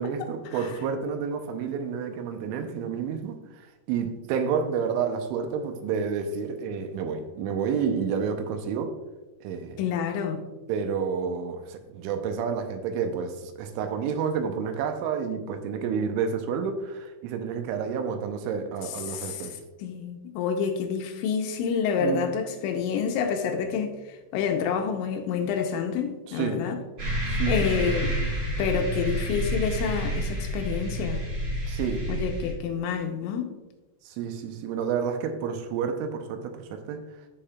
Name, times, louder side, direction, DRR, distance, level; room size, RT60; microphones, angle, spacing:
voice 1, 0.0-8.9 9.4-9.8 10.7-19.5 22.0-22.3 26.3-26.6 27.3-27.9 31.7-32.1 34.1-37.0, right 6 dB, 85° right, 3.1 m, -30 dB
voice 2, 9.8-10.4 19.1-19.5 19.8-26.8 27.5-28.3 28.6-31.2 32.1-33.5, left 6 dB, 85° left, 3.0 m, -28 dB
sound 1, 27.0-32.5, equal, 30° right, 2.7 m, -29 dB
14.0 x 5.0 x 2.3 m
omnidirectional pair, 5.4 m